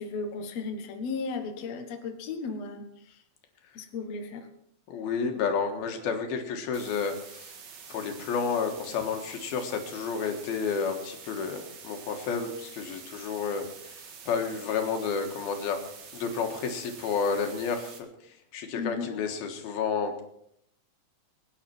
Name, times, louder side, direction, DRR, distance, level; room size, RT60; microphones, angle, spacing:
voice 1, 0.0-2.8 3.8-4.4 18.8-19.1, left 4 dB, 55° left, 4 dB, 2.3 m, -35 dB
voice 2, 4.9-7.5 7.9-14.0 14.3-15.8 16.1-18.1 18.5-20.2, left 5 dB, 90° left, 4 dB, 3.4 m, -31 dB
sound 1, 6.7-18.0, right 6 dB, 55° right, 2.6 m, -47 dB
22.5 x 10.0 x 4.5 m, 0.74 s
omnidirectional pair, 4.2 m